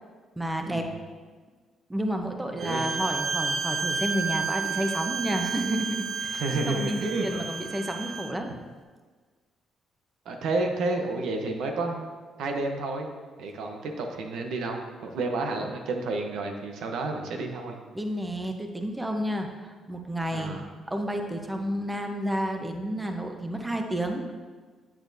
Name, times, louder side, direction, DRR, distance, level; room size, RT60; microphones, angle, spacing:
voice 1, 0.4-0.9 1.9-8.5 17.9-20.6 20.9-24.3, right 1 dB, 10° right, 4 dB, 0.8 m, -30 dB
Bowed string instrument, 2.6-8.4, right 5 dB, 50° right, 0.5 m, -31 dB
voice 2, 2.6-2.9 6.3-7.4 10.3-12.0 12.4-13.1 13.4-17.8 20.3-20.6, right 2 dB, 80° right, 3 dB, 0.9 m, -30 dB
8.7 x 8.1 x 2.7 m, 1.5 s
cardioid pair, 90°, 0 cm